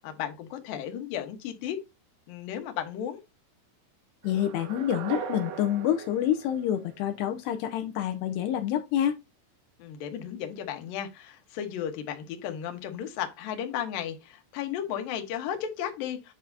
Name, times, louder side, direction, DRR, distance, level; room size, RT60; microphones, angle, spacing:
voice 1, 0.0-1.8 2.3-3.2 9.8-16.3, left 9 dB, 70° left, 2.3 m, -34 dB
voice 2, 4.2-9.2, left 10 dB, 85° left, 2.3 m, -27 dB
sound 1, 4.2-7.3, right 7 dB, 80° right, 3.8 m, -39 dB
9.5 x 5.7 x 2.7 m
omnidirectional pair, 5.6 m